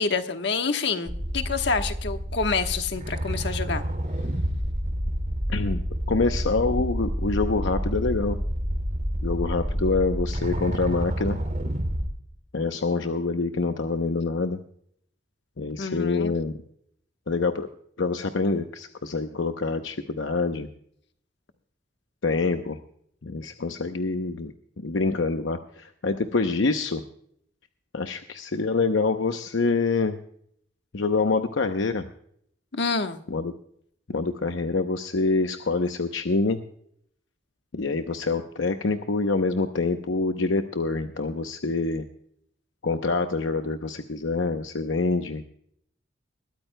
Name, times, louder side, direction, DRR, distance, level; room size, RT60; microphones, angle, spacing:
voice 1, 0.0-3.8 15.8-16.3 32.7-33.2, left 4 dB, 65° left, 7 dB, 1.2 m, -27 dB
sound 1, 1.1-12.1, equal, 40° right, 2.2 m, -29 dB
voice 2, 5.5-5.8 6.1-8.4 9.2-11.4 12.5-14.6 15.6-16.6 17.3-17.7 18.0-20.7 22.2-22.8 23.2-27.0 27.9-30.2 30.9-32.1 33.3-33.5 34.1-36.6 37.7-42.0 42.8-45.4, left 3 dB, 80° left, 7 dB, 0.8 m, -26 dB
21.5 x 13.5 x 2.2 m, 0.68 s
head